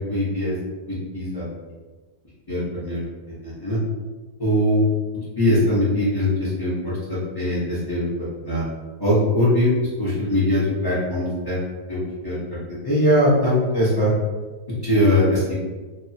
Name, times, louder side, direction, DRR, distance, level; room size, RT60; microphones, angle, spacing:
voice 1, 0.1-0.5 1.1-1.4 2.5-3.0 3.4-3.8 4.4-4.8 5.4-8.6 9.0-11.6 11.9-12.6 12.8-14.1 14.8-15.6, left 1 dB, 25° left, -10 dB, 0.5 m, -21 dB
2.9 x 2.3 x 2.7 m, 1.3 s
omnidirectional pair, 1.9 m